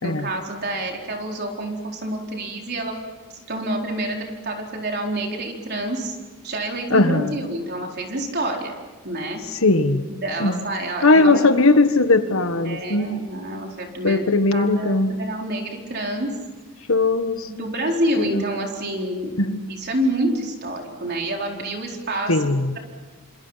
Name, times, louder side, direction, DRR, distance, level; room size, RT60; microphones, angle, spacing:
voice 1, 0.0-3.0 3.5-6.2 6.4-8.7 9.0-9.4 10.1-11.5 12.6-14.2 14.5-16.3 17.5-19.3 19.7-22.3 22.7-22.8, right 1 dB, 50° right, 1 dB, 4.4 m, -27 dB
voice 2, 6.9-7.3 9.6-10.0 10.4-10.6 11.0-13.2 14.0-15.1 16.9-17.7 18.2-18.4 19.4-19.6 22.3-22.8, left 2 dB, 70° left, 10 dB, 1.5 m, -19 dB
28.0 x 26.5 x 5.8 m, 1.4 s
head